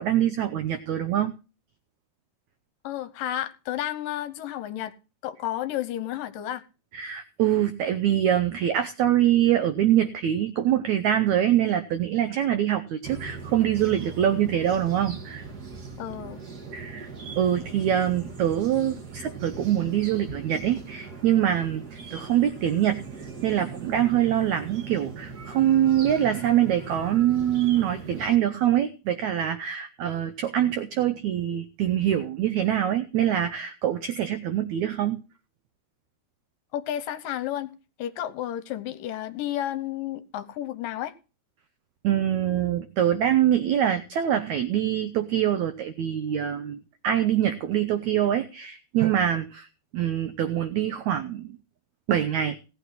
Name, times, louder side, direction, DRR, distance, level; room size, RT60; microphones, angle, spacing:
voice 1, 0.0-1.3 6.9-15.4 16.7-17.1 17.4-35.2 42.0-49.7 49.9-51.6 52.1-52.6, right 11 dB, 85° right, 1.6 m, -24 dB
voice 2, 2.8-4.9 5.2-6.6 16.0-16.4 36.7-37.7 38.0-41.1, left 12 dB, 75° left, 2.3 m, -31 dB
sound 1, 13.0-28.4, right 5 dB, 45° right, 1.2 m, -40 dB
17.5 x 8.8 x 4.1 m
omnidirectional pair, 4.5 m